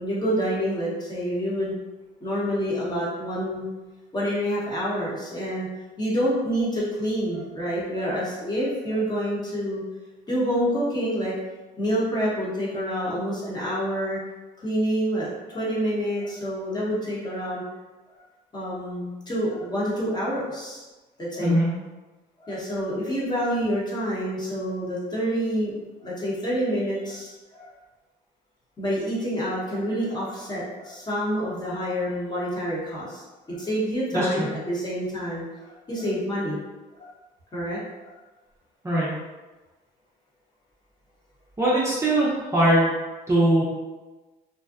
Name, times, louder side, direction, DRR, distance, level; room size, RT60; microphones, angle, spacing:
voice 1, 0.0-1.7 2.2-3.7 4.1-5.7 6.0-9.8 10.3-11.3 11.8-14.2 14.6-17.6 18.5-20.8 21.2-21.6 22.4-27.7 28.8-33.2 33.5-36.6 37.0-37.1 37.5-38.1, equal, 25° left, -7 dB, 0.9 m, -27 dB
voice 2, 34.1-34.5 38.8-39.1 41.6-42.9 43.3-43.6, right 1 dB, 15° right, -7 dB, 0.6 m, -21 dB
2.6 x 2.2 x 2.4 m, 1.2 s
cardioid pair, 110°, 17 cm